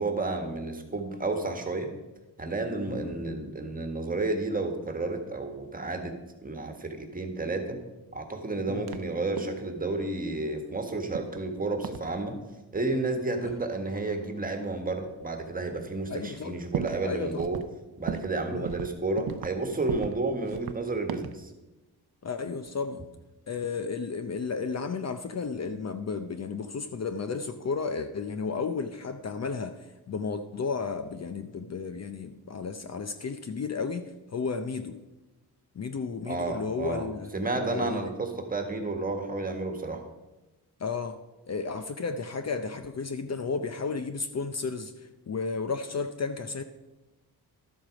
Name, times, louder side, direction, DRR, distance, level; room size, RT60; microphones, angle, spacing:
voice 1, 0.0-1.9 2.4-7.8 8.1-12.4 12.7-17.6 18.0-21.5 36.2-37.1 37.3-40.0, right 2 dB, 20° right, 5 dB, 1.5 m, -31 dB
sound 1, 8.8-9.1 9.4-9.7 11.1-11.5 11.8-12.1 13.4-13.6 14.5-14.6 15.2-15.3 15.8-15.9 16.1-17.1 17.4-17.7 18.1-18.4 18.6-19.6 19.9-20.2 20.5-21.4, right 8 dB, 65° right, 0.7 m, -36 dB
voice 2, 16.1-16.6 17.0-17.4 18.5-18.7 22.2-23.0 23.5-35.0 35.7-38.1 40.8-41.2 41.5-44.9 45.3-46.6, left 5 dB, 40° left, 9 dB, 0.6 m, -33 dB
12.0 x 7.8 x 5.1 m, 1.1 s
wide cardioid pair, 110°, 39 cm